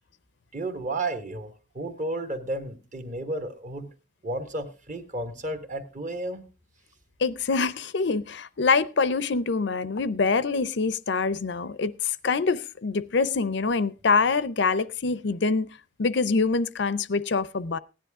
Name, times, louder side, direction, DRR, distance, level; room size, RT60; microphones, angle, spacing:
voice 1, 0.5-3.9 4.2-6.4, right 2 dB, 40° right, 1.4 m, -32 dB
voice 2, 7.2-15.7 16.0-17.8, left 4 dB, 55° left, 0.5 m, -25 dB
16.0 x 10.5 x 3.6 m
head